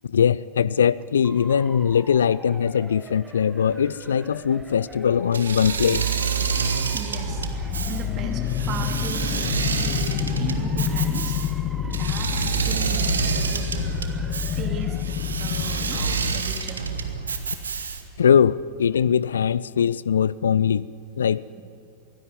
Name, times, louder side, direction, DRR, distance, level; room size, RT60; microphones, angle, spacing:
voice 1, 0.1-6.0 18.2-20.9 21.2-21.6, left 7 dB, 65° left, 21 dB, 0.4 m, -21 dB
Motor vehicle (road) / Siren, 1.2-15.0, right 4 dB, 15° right, 1.3 m, -45 dB
Engine / Mechanisms, 5.3-18.2, right 5 dB, 70° right, 1.6 m, -28 dB
voice 2, 6.6-11.4 11.9-13.7 14.6-15.0 15.4-16.9, right 6 dB, 35° right, 5 dB, 2.4 m, -37 dB
sound 1, 7.3-16.4, left 9 dB, 35° left, 1.3 m, -28 dB
23.5 x 16.0 x 7.9 m, 2.7 s
figure-of-eight pair, 90°, 0 cm